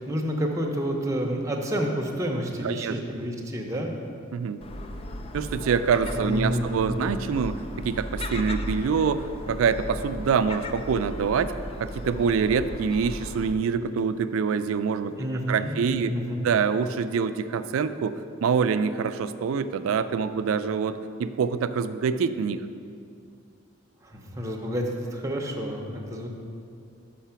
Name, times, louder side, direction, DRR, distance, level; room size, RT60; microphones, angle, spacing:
voice 1, 0.0-3.9 6.1-7.0 15.2-16.5 24.0-26.3, equal, 15° right, 0 dB, 0.7 m, -29 dB
voice 2, 2.6-3.0 4.3-4.6 5.3-11.5 11.8-15.1 15.5-16.1 16.4-22.6, right 6 dB, 90° right, 12 dB, 0.3 m, -25 dB
Gull seagull, 4.6-13.5, left 1 dB, 30° left, 0.3 m, -36 dB
5.8 x 5.7 x 5.7 m, 2.5 s
head